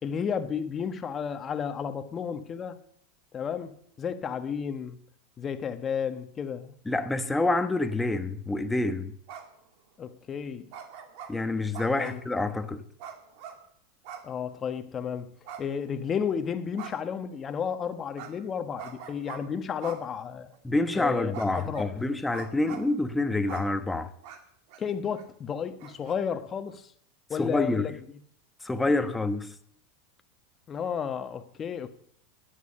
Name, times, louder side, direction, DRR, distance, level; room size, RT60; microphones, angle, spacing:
voice 1, 0.0-2.8 3.3-5.0 5.4-6.7 10.0-10.7 12.0-12.2 14.2-15.3 15.6-20.5 20.9-21.3 21.7-21.9 24.8-26.9 27.3-27.9 28.9-29.2 30.7-31.9, left 7 dB, 30° left, 1.3 m, -32 dB
voice 2, 6.9-9.1 11.3-12.8 20.6-24.1 27.4-27.9 28.6-29.5, left 2 dB, 10° left, 1.2 m, -27 dB
sound 1, 9.3-9.6 10.7-11.3 11.7-12.3 13.0-13.6 14.0-14.3 14.6-14.7 15.5-16.2 16.8-17.2 18.2-18.3 18.8-19.4 19.8-20.0 20.5-20.6 21.3-21.9 22.3-22.9 23.5-23.6 24.2-24.4 24.7-24.8 25.2-25.3 25.8-26.1, right 8 dB, 60° right, 2.3 m, -42 dB
12.5 x 9.6 x 6.7 m
hypercardioid pair, 100°, 0 cm